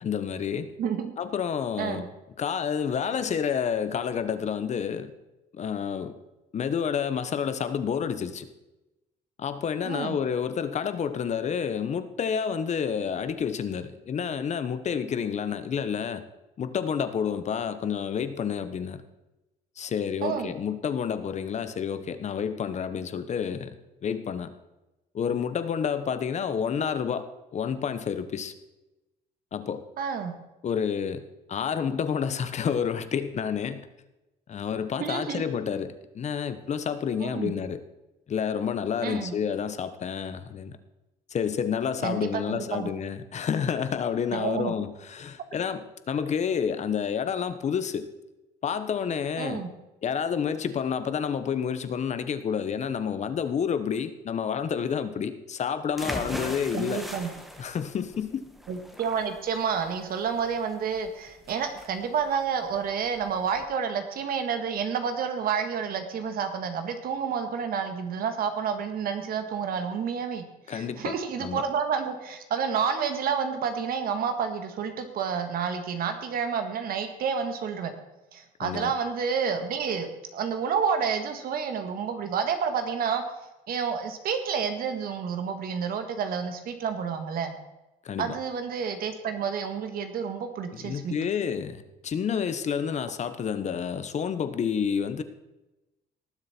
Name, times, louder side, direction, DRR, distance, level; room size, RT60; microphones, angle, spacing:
voice 1, 0.0-0.7 1.2-2.1 2.4-5.1 5.5-6.1 6.5-8.5 9.4-16.2 16.6-19.0 19.8-23.7 24.0-24.5 25.1-28.5 29.5-29.9 30.6-33.9 34.5-37.8 38.3-40.8 41.3-48.1 48.6-49.6 50.0-57.0 57.6-58.5 70.7-71.6 78.6-78.9 88.0-88.4 90.7-95.2, left 7 dB, 45° left, 11 dB, 1.1 m, -29 dB
voice 2, 0.8-1.1 1.8-2.1 9.8-10.2 20.2-20.5 30.0-30.3 35.0-35.4 37.2-37.5 39.0-39.3 42.0-42.9 44.3-44.7 49.4-49.7 56.7-57.3 58.7-77.9 78.3-83.2 83.7-87.5 88.2-91.1, right 6 dB, 60° right, 7 dB, 1.8 m, -29 dB
sound 1, 56.0-63.6, equal, ahead, 1.3 m, -40 dB
18.5 x 7.5 x 4.5 m, 0.99 s
cardioid pair, 110°, 17 cm